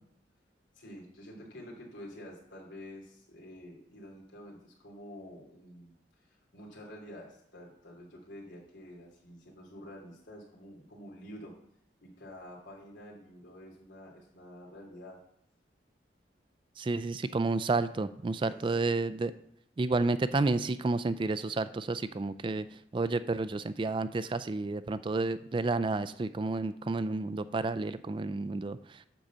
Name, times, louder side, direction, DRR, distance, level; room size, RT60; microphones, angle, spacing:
voice 1, 0.7-5.9 6.3-11.5 12.0-15.2 18.4-18.9, equal, 90° left, -2 dB, 2.8 m, -49 dB
voice 2, 16.8-19.3 19.8-22.7 22.9-29.0, right 3 dB, 25° right, 13 dB, 0.3 m, -31 dB
10.0 x 4.0 x 7.3 m, 0.74 s
head